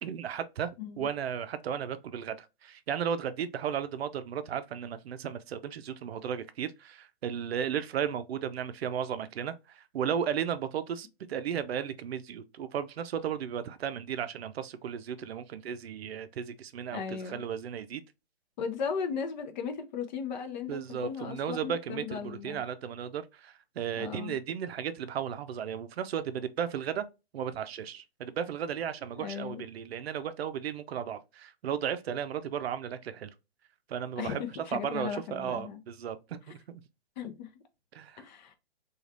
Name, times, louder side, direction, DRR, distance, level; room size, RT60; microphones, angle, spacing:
voice 1, 0.0-0.7 1.0-18.0 20.7-27.1 27.3-33.3 33.9-36.8 37.9-38.2, right 8 dB, 70° right, 0.5 m, -35 dB
voice 2, 16.9-17.4 18.6-22.6 24.0-24.3 29.2-29.6 34.2-35.8 37.2-37.5 38.2-38.5, left 6 dB, 45° left, 0.6 m, -36 dB
3.2 x 2.4 x 2.5 m
hypercardioid pair, 130°, 32 cm